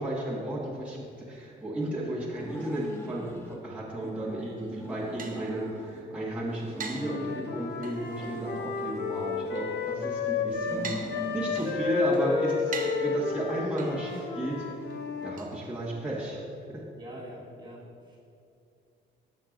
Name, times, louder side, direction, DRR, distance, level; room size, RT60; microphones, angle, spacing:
voice 1, 0.0-14.6 15.2-16.4 16.7-16.8, right 1 dB, 5° right, -8 dB, 1.6 m, -33 dB
sound 1, 2.3-3.6 4.0-6.1 6.4-7.7 8.1-10.0 10.5-11.7, left 1 dB, 10° left, 1.0 m, -44 dB
sound 2, 4.6-16.2, right 5 dB, 45° right, 0.8 m, -45 dB
Wind instrument woodwind instrument, 6.9-10.8 11.1-15.4, left 5 dB, 55° left, 0.8 m, -32 dB
voice 2, 17.0-18.2, equal, 20° right, -5 dB, 1.9 m, -44 dB
12.0 x 6.8 x 2.6 m, 2.5 s
cardioid pair, 90°, 20 cm